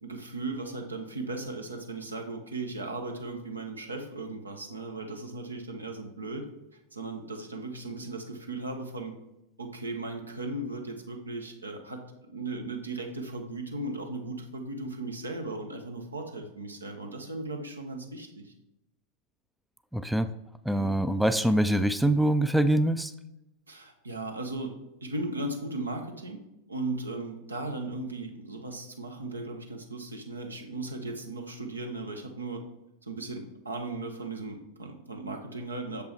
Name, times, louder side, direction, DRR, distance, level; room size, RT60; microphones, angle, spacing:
voice 1, 0.0-6.4 6.9-9.1 9.6-18.5 20.7-20.9 23.7-24.7 25.0-26.4 26.7-32.6 33.0-36.0, right 2 dB, 80° right, 4 dB, 1.0 m, -37 dB
voice 2, 19.9-20.3 20.7-23.1, right 1 dB, ahead, 11 dB, 0.3 m, -24 dB
6.7 x 5.3 x 4.5 m, 0.89 s
figure-of-eight pair, 90°, 0 cm